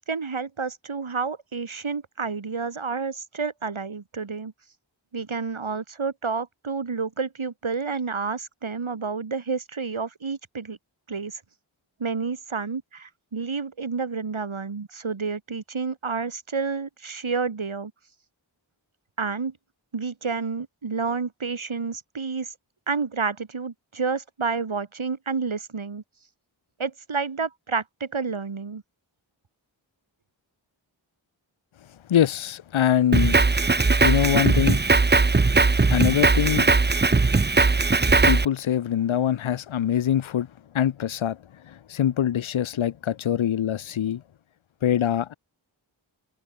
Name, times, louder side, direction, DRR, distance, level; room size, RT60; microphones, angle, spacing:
voice 1, 0.1-4.5 5.1-10.8 11.1-11.4 12.0-17.9 19.2-19.5 19.9-22.5 22.9-26.0 26.8-28.8, right 5 dB, 85° right, 3.1 m, -30 dB
voice 2, 32.1-33.4 34.0-34.8 35.9-36.7 38.3-40.5 40.7-41.4 41.7-44.2 44.8-45.3, left 10 dB, 80° left, 0.7 m, -23 dB
Drum kit, 33.1-38.5, right 3 dB, 20° right, 0.7 m, -19 dB
wide cardioid pair, 50°, 47 cm